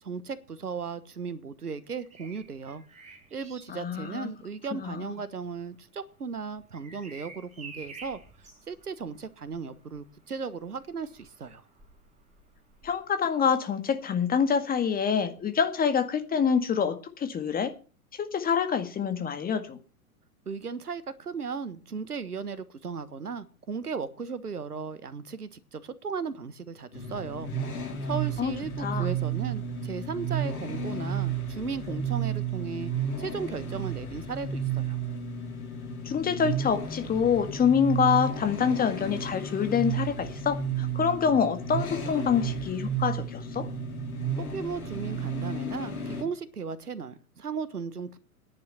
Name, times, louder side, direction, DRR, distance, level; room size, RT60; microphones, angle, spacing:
voice 1, 0.0-2.8 3.3-8.2 8.7-11.6 20.4-27.5 28.0-32.9 33.2-35.0 44.4-48.2, right 5 dB, 85° right, 1.5 m, -36 dB
Bird vocalization bird call bird song, 1.8-13.6 15.4-15.6, right 4 dB, 15° right, 4.6 m, -52 dB
voice 2, 3.7-4.3 4.7-5.1 12.8-17.7 18.2-19.8 28.4-28.5 28.8-29.1 36.1-43.7, left 7 dB, 20° left, 1.9 m, -26 dB
sound 1, 26.9-46.2, right 5 dB, 70° left, 3.7 m, -32 dB
10.5 x 8.7 x 8.3 m
figure-of-eight pair, 95°, 44 cm